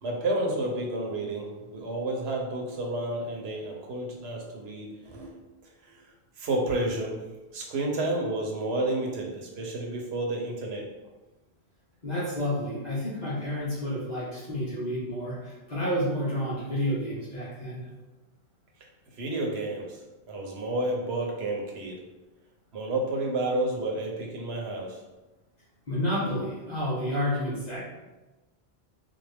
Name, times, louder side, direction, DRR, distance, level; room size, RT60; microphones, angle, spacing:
voice 1, 0.0-6.1 6.4-7.2 7.5-10.8 19.1-20.0 20.3-22.0 22.7-25.0, right 2 dB, 80° right, 0 dB, 1.0 m, -31 dB
voice 2, 12.0-17.9 25.9-27.8, equal, 45° left, -7 dB, 1.0 m, -30 dB
3.7 x 2.5 x 3.4 m, 1.1 s
omnidirectional pair, 1.1 m